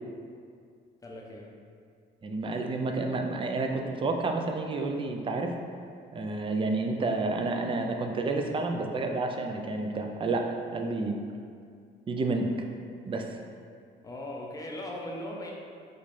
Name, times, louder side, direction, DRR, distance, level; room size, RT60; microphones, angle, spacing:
voice 1, 1.0-1.4 14.0-15.5, left 1 dB, 15° left, -2 dB, 0.6 m, -38 dB
voice 2, 2.2-5.5 6.1-10.5 10.7-11.2 12.1-12.5 13.1-13.4, right 3 dB, 25° right, 3 dB, 0.4 m, -30 dB
4.1 x 2.4 x 3.2 m, 2.2 s
cardioid pair, 90°, 20 cm